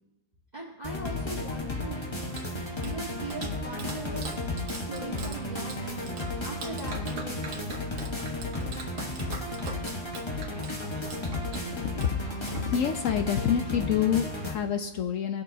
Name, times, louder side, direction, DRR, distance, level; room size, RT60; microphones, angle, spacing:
voice 1, 0.5-2.0 2.8-4.4 4.9-6.1 6.4-8.3, right 2 dB, 25° right, -5 dB, 1.4 m, -40 dB
sound 1, 0.8-14.5, left 2 dB, 20° left, 0.9 m, -34 dB
Clapping, 2.0-13.2, right 4 dB, 70° right, 1.6 m, -44 dB
voice 2, 11.7-15.4, left 9 dB, 70° left, 6 dB, 0.8 m, -28 dB
19.0 x 6.8 x 2.7 m, 1.0 s
omnidirectional pair, 1.8 m